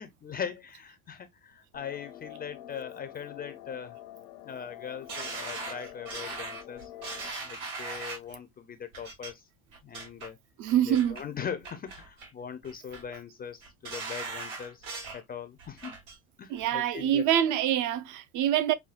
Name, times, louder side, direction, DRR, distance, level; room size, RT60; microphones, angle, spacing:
voice 1, 0.0-4.0 4.4-6.9 7.4-9.5 9.8-10.4 10.9-15.9 16.4-17.3, left 7 dB, 25° left, 0.4 m, -40 dB
sound 1, 1.7-7.3, left 13 dB, 85° left, 0.7 m, -46 dB
sound 2, 5.1-8.3 8.9-9.3 9.7-10.3 10.7-11.2 11.6-12.3 12.6-13.2 13.6-15.2 15.6-16.2 16.6-16.7, right 3 dB, 80° right, 2.4 m, -39 dB
voice 2, 10.6-11.2 16.5-18.7, right 11 dB, 50° right, 0.6 m, -25 dB
5.6 x 2.3 x 2.4 m
supercardioid pair, 110°, 39 cm